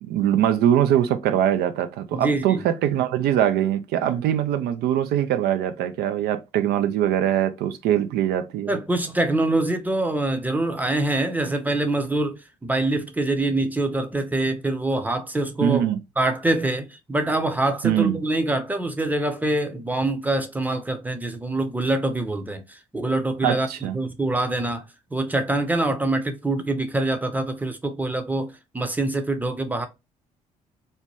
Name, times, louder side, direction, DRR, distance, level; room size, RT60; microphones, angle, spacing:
voice 1, 0.0-8.8 15.6-16.0 17.8-18.2 23.4-23.9, right 10 dB, 65° right, 0.4 m, -22 dB
voice 2, 2.1-2.6 8.7-15.8 16.2-24.8 25.1-29.9, right 2 dB, 10° right, 0.7 m, -25 dB
2.7 x 2.1 x 3.1 m
hypercardioid pair, 50°, 18 cm